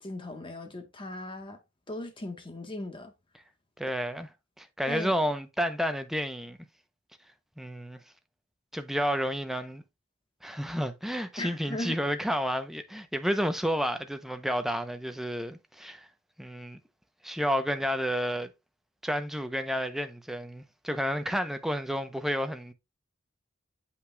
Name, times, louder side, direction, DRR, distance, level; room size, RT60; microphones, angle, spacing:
voice 1, 0.0-1.6 1.9-3.1 4.9-5.1 11.4-12.0, left 1 dB, 25° left, 1.2 m, -37 dB
voice 2, 3.8-4.3 4.6-6.6 7.6-8.0 8.7-9.8 10.4-16.1 16.4-16.8 17.2-18.5 19.0-22.7, equal, ahead, 0.7 m, -31 dB
7.9 x 5.8 x 2.3 m
head